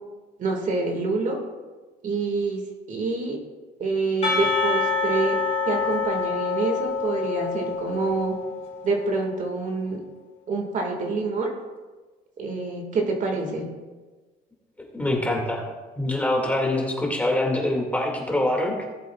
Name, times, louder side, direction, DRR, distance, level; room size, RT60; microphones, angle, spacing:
voice 1, 0.4-1.4 2.0-2.6 2.9-3.4 3.8-5.4 5.7-8.3 8.8-10.0 10.5-11.5 12.4-13.7, right 3 dB, 50° right, 2 dB, 1.9 m, -26 dB
Percussion / Church bell, 4.2-8.8, left 4 dB, 40° left, 3.2 m, -26 dB
voice 2, 14.9-15.7 16.0-18.8, left 1 dB, 10° left, -1 dB, 2.1 m, -24 dB
17.5 x 7.6 x 2.3 m, 1.3 s
cardioid pair, 110°, 17 cm